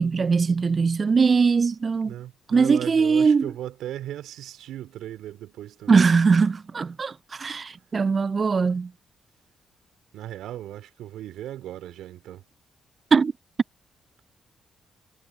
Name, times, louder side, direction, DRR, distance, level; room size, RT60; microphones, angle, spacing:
voice 1, 0.0-2.1 2.5-3.5 5.9-8.9 13.1-13.3, right 5 dB, 45° right, 0.6 m, -21 dB
voice 2, 2.0-6.0 10.1-12.4, right 12 dB, 75° right, 3.3 m, -37 dB
hypercardioid pair, 45°, 0 cm